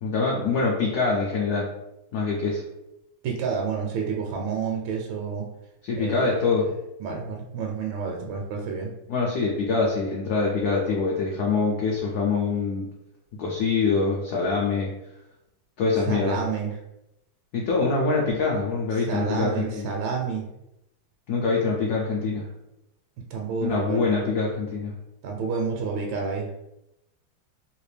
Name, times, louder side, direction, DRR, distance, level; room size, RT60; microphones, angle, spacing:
voice 1, 0.0-1.7 2.1-2.6 5.8-6.7 9.1-12.9 13.4-14.9 15.8-16.4 17.5-19.9 21.3-22.5 23.6-24.9, left 4 dB, 75° left, -3 dB, 0.9 m, -24 dB
voice 2, 3.2-5.5 5.9-6.5 7.0-8.9 16.1-16.7 19.0-20.4 23.3-24.2 25.2-26.5, right 5 dB, 75° right, 0 dB, 1.2 m, -29 dB
3.3 x 2.5 x 3.2 m, 0.88 s
omnidirectional pair, 2.3 m